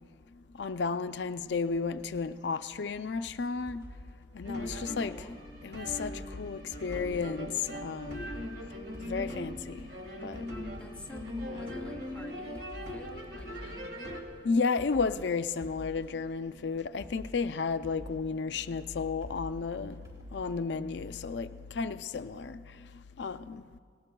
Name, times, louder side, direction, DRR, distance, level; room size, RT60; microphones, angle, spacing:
voice 1, 0.6-3.8 4.3-5.2 5.6-8.3 9.0-9.8 10.2-10.4 11.6-11.8 14.4-20.0 20.3-21.5 21.7-22.6 23.2-23.6, left 4 dB, 70° left, 0.5 m, -33 dB
sound 1, 3.7-21.4, left 1 dB, 20° right, 3.9 m, -50 dB
sound 2, 4.4-14.2, left 1 dB, 60° right, 1.8 m, -40 dB
voice 2, 4.6-5.4 10.8-14.3, left 1 dB, 5° left, 0.6 m, -49 dB
29.0 x 19.0 x 2.3 m
head